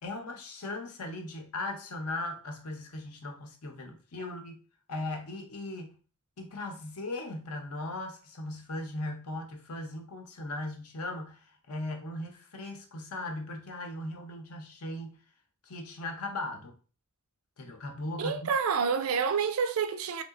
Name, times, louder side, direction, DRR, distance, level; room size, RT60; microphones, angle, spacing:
voice 1, 0.0-4.6 4.9-6.0 6.4-15.2 15.7-16.7 17.6-18.6, left 2 dB, 80° left, 0.7 m, -38 dB
voice 2, 18.2-20.2, right 6 dB, 65° right, 0.4 m, -28 dB
3.5 x 2.8 x 2.4 m
head